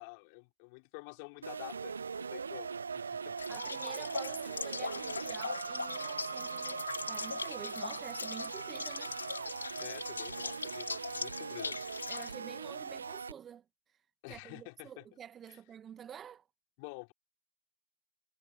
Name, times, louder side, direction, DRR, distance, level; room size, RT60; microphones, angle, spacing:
voice 1, 0.0-3.3 9.8-11.8 14.2-15.0 15.5-15.6 16.8-17.1, left 33 dB, 25° left, 4.1 m, -49 dB
sound 1, 1.4-13.3, right 5 dB, 60° right, 1.1 m, -41 dB
sound 2, 3.4-12.4, left 4 dB, 65° left, 3.1 m, -41 dB
voice 2, 3.5-9.2 12.1-14.0 14.3-16.5, right 9 dB, 10° right, 1.6 m, -49 dB
figure-of-eight pair, 140°, 0 cm